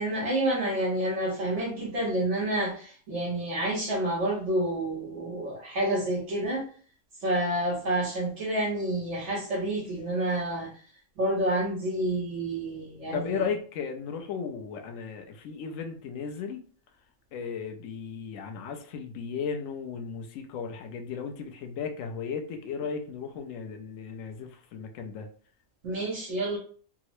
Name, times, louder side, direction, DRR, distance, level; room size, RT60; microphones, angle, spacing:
voice 1, 0.0-6.7 7.2-10.7 11.2-13.4 25.8-26.6, right 1 dB, 60° right, -4 dB, 1.2 m, -29 dB
voice 2, 13.1-16.6 17.3-25.3, left 6 dB, 80° left, 5 dB, 1.0 m, -35 dB
3.6 x 2.0 x 2.9 m, 0.43 s
omnidirectional pair, 1.4 m